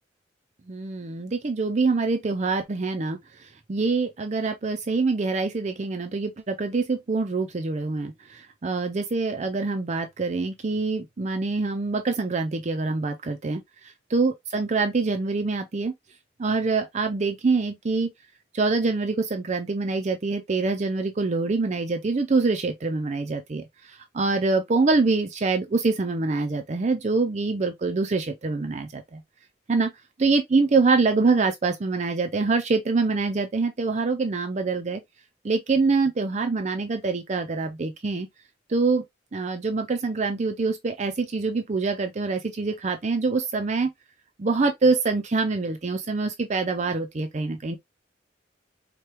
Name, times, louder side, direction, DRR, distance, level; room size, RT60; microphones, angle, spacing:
voice 1, 0.7-3.2 3.7-13.6 14.1-15.9 16.4-18.1 18.5-29.2 29.7-29.9 30.2-35.0 35.4-38.3 38.7-39.0 39.3-43.9 44.4-47.8, right 3 dB, 40° right, 0.5 m, -25 dB
4.5 x 2.2 x 3.3 m
head